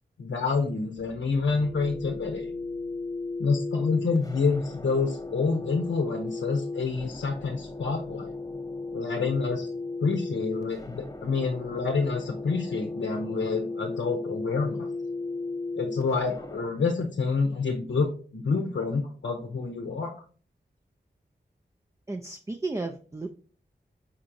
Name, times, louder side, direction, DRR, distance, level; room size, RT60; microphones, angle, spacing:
voice 1, 0.2-2.5 3.4-8.3 8.9-9.7 10.0-14.9 15.7-20.1, left 4 dB, 80° left, 2 dB, 0.6 m, -28 dB
sound 1, 1.0-16.6, left 3 dB, 20° left, 0.7 m, -36 dB
voice 2, 22.1-23.3, right 3 dB, 15° right, 5 dB, 0.4 m, -33 dB
4.5 x 3.9 x 2.6 m, 0.41 s
cardioid pair, 40°, 19 cm